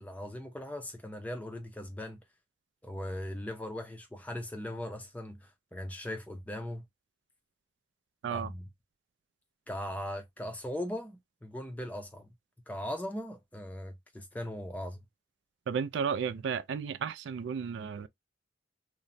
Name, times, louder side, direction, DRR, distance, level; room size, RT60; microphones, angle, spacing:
voice 1, 0.0-2.2 2.8-6.8 8.3-8.6 9.7-12.3 12.7-15.0, left 1 dB, 10° left, 0.4 m, -39 dB
voice 2, 15.7-18.1, right 6 dB, 75° right, 0.3 m, -33 dB
2.9 x 2.1 x 2.5 m
head